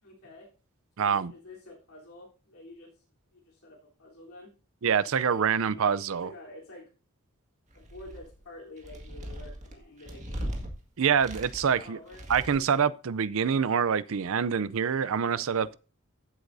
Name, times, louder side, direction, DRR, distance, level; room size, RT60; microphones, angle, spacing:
voice 1, 0.0-0.5 1.0-2.9 3.3-4.5 4.9-6.9 7.7-10.5 11.7-12.2, left 2 dB, 75° left, 3.5 m, -49 dB
voice 2, 1.0-1.3 4.8-6.3 11.0-12.0 12.3-15.8, right 7 dB, 65° right, 0.5 m, -26 dB
sound 1, 7.7-8.4 8.8-10.7 11.1-11.8 12.1-12.8, equal, 35° right, 1.9 m, -39 dB
15.0 x 8.0 x 2.7 m
head